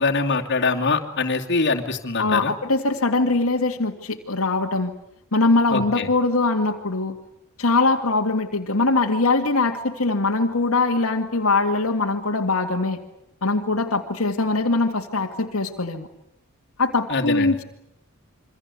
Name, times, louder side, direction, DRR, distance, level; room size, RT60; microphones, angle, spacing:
voice 1, 0.0-2.5 5.7-6.1 17.1-17.5, left 3 dB, 55° left, 2 dB, 2.7 m, -23 dB
voice 2, 2.2-4.9 5.3-7.2 7.6-13.0 13.4-16.1 16.8-17.6, left 3 dB, 75° left, 3 dB, 2.2 m, -22 dB
27.5 x 24.5 x 8.4 m, 0.78 s
head